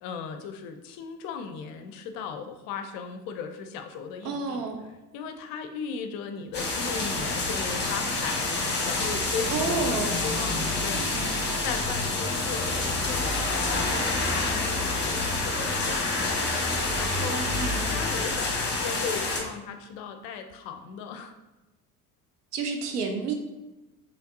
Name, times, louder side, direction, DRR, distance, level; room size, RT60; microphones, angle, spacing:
voice 1, 0.0-4.7 5.1-8.6 8.8-11.0 11.4-16.4 16.9-17.5 17.9-21.3, left 6 dB, 50° left, 7 dB, 0.6 m, -37 dB
voice 2, 4.2-4.8 9.5-10.2 10.9-11.3 17.3-17.9 22.5-23.3, right 4 dB, 80° right, 4 dB, 0.7 m, -30 dB
sound 1, 6.5-19.4, left 2 dB, 25° left, 1.2 m, -27 dB
5.6 x 3.2 x 2.6 m, 1.0 s
figure-of-eight pair, 65°, 46 cm